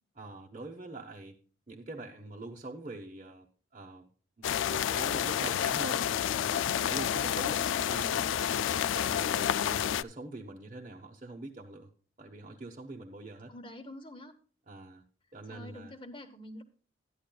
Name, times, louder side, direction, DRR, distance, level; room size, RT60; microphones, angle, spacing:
voice 1, 0.2-1.4 1.7-3.5 3.7-4.1 4.4-6.0 6.5-8.3 8.7-11.9 12.2-13.5 14.7-15.0 15.3-15.9, right 2 dB, 35° right, -3 dB, 1.1 m, -44 dB
sound 1, 4.4-10.0, left 9 dB, 80° left, 0.3 m, -29 dB
voice 2, 13.5-14.3 15.5-16.6, left 1 dB, 25° left, 8 dB, 1.1 m, -47 dB
12.5 x 10.5 x 2.3 m, 0.40 s
head